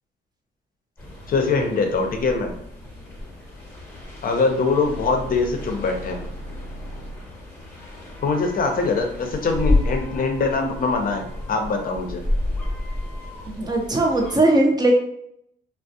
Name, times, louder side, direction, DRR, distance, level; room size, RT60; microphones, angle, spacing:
sound 1, 1.0-14.4, left 2 dB, 10° left, 0.8 m, -31 dB
voice 1, 1.3-2.5 4.2-6.2 8.2-12.2, left 4 dB, 45° left, 3 dB, 0.6 m, -23 dB
sound 2, 4.8-7.7, equal, 75° right, 0.9 m, -37 dB
voice 2, 13.4-14.9, right 2 dB, 20° right, 1 dB, 0.5 m, -19 dB
2.4 x 2.0 x 2.7 m, 0.72 s
cardioid pair, 90°, 20 cm